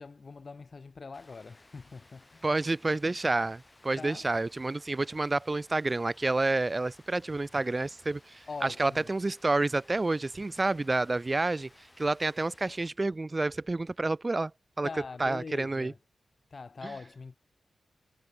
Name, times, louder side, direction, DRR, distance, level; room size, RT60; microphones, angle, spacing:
voice 1, 0.0-2.5 4.0-4.3 8.5-9.1 14.8-16.0 16.5-17.4, left 4 dB, 55° left, 5.5 m, -43 dB
Rain, 1.1-12.9, left 2 dB, 25° left, 2.8 m, -59 dB
voice 2, 2.4-11.7 12.0-14.5 14.8-14.9 15.2-15.9, right 2 dB, 35° right, 0.4 m, -29 dB
cardioid pair, 45°, 0 cm